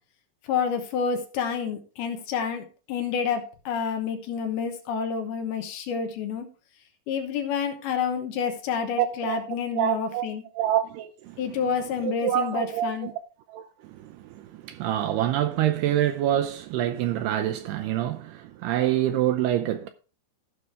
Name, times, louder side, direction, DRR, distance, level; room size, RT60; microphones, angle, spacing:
voice 1, 0.4-6.5 7.1-10.4 11.4-13.1, left 6 dB, 70° left, 2.8 m, -29 dB
voice 2, 9.0-10.3 10.5-11.4 12.0-13.1 13.5-19.9, right 12 dB, 80° right, 2.4 m, -26 dB
16.0 x 6.1 x 3.5 m
omnidirectional pair, 5.1 m